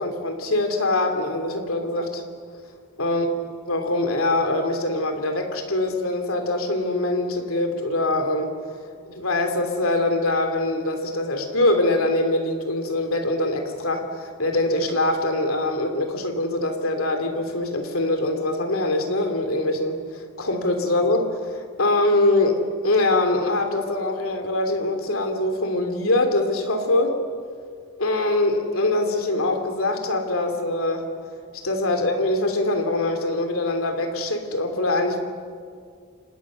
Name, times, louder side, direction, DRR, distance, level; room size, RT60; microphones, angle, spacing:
voice 1, 0.0-2.2 3.0-3.3 3.7-8.5 9.0-27.2 28.0-31.1 31.6-35.2, left 2 dB, 65° left, 5 dB, 3.2 m, -23 dB
29.5 x 27.0 x 6.5 m, 2.2 s
head